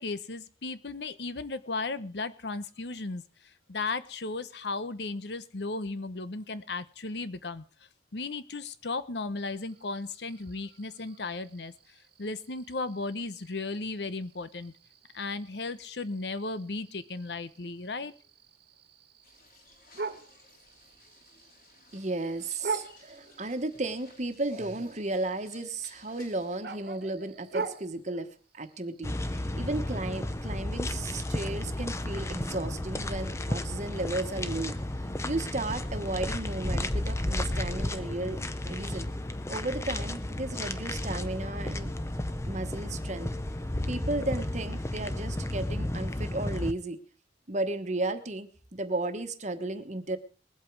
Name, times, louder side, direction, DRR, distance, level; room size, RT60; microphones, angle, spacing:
voice 1, 0.0-3.2 3.7-7.6 8.1-11.7 12.2-14.7 15.1-18.1, left 3 dB, 75° left, 14 dB, 0.9 m, -35 dB
sound 1, 9.4-29.0, right 4 dB, 60° right, 1.4 m, -44 dB
sound 2, 19.2-26.6, left 3 dB, 55° left, 2.9 m, -57 dB
voice 2, 21.9-34.8 35.2-38.4 38.6-39.1 39.5-41.9 42.5-43.3 43.9-47.0 47.5-50.2, right 2 dB, 40° right, 9 dB, 1.2 m, -34 dB
sound 3, 29.0-46.7, left 1 dB, 15° left, 0.7 m, -33 dB
20.5 x 8.3 x 4.7 m, 0.38 s
head